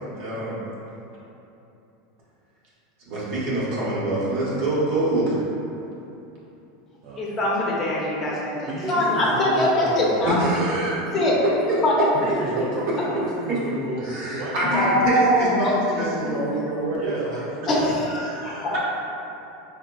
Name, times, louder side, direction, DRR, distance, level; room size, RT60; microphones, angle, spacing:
voice 1, 0.1-0.6 3.1-5.4 10.2-11.0 11.7-11.8 14.0-17.4 18.0-18.8, right 1 dB, 60° right, -7 dB, 1.0 m, -25 dB
voice 2, 7.2-10.4 11.1-11.4 11.8-12.1 14.6-15.8 16.2-16.5 17.7-18.8, left 1 dB, 30° left, -4 dB, 0.6 m, -22 dB
voice 3, 8.7-10.5 11.4-11.5 12.1-15.1 17.0-17.5, right 1 dB, 45° right, -6 dB, 0.4 m, -32 dB
4.0 x 2.1 x 2.3 m, 2.9 s
supercardioid pair, 125°, 0 cm